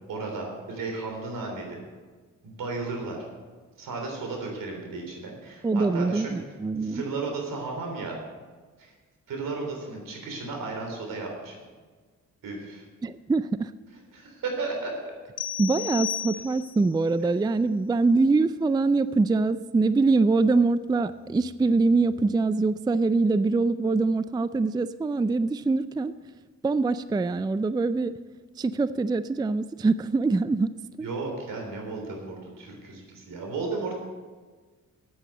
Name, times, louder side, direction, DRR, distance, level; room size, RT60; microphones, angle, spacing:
voice 1, 0.1-1.8 2.4-3.2 3.8-6.3 6.8-8.2 8.8-8.9 9.3-11.6 12.4-12.9 14.1-14.9 31.0-34.0, right 3 dB, 75° right, 1 dB, 3.6 m, -34 dB
voice 2, 5.6-7.0 13.0-13.7 15.6-26.1 26.6-28.1 28.6-30.7 31.0-31.1, right 3 dB, 15° right, 14 dB, 0.4 m, -24 dB
sound 1, 15.4-16.9, left 10 dB, 70° left, 1.0 m, -33 dB
9.1 x 8.7 x 7.7 m, 1.4 s
supercardioid pair, 60°, 33 cm